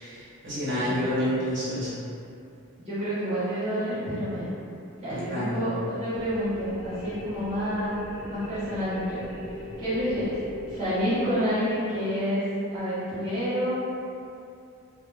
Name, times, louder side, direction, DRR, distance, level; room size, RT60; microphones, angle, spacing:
voice 1, 0.0-2.0 5.3-5.7, equal, 55° right, -12 dB, 1.0 m, -29 dB
voice 2, 2.8-4.5 5.0-8.0 8.3-9.2 9.8-10.4 10.7-12.4 12.7-13.9, equal, 30° right, -15 dB, 0.7 m, -28 dB
sound 1, 6.1-11.9, left 1 dB, 35° left, 0.7 m, -40 dB
2.5 x 2.1 x 3.2 m, 2.6 s
head